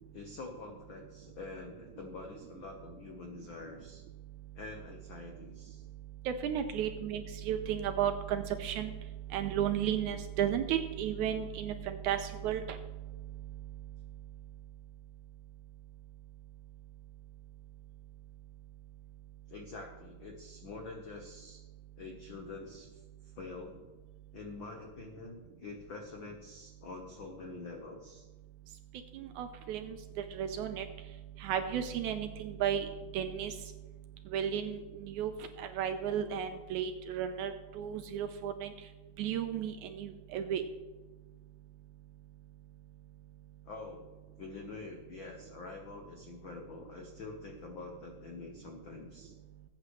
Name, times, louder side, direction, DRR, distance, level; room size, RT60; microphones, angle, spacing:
voice 1, 0.1-4.0 4.6-5.8 19.5-21.6 22.0-22.9 23.3-23.8 24.3-28.3 43.7-44.1 44.4-49.3, left 3 dB, 75° left, 2 dB, 1.1 m, -46 dB
voice 2, 6.3-8.9 9.3-12.2 12.4-12.6 29.2-30.0 30.4-30.9 31.4-32.9 33.1-33.5 34.3-34.8 35.2-35.3 35.6-38.7 39.2-40.6, right 9 dB, 75° right, 8 dB, 1.9 m, -33 dB
20.5 x 8.7 x 3.2 m, 1.2 s
omnidirectional pair, 3.9 m